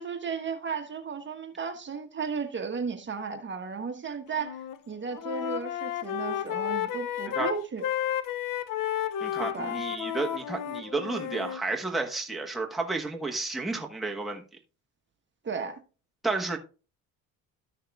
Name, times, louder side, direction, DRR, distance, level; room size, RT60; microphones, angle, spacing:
voice 1, 0.0-7.8 9.4-9.8 15.4-15.8, right 5 dB, 30° right, 1.2 m, -34 dB
Wind instrument woodwind instrument, 4.4-4.8 5.1-11.6, left 11 dB, 60° left, 0.8 m, -32 dB
voice 2, 9.2-14.4 16.2-16.6, right 3 dB, ahead, 1.1 m, -31 dB
13.0 x 6.5 x 2.3 m
cardioid pair, 100°, 36 cm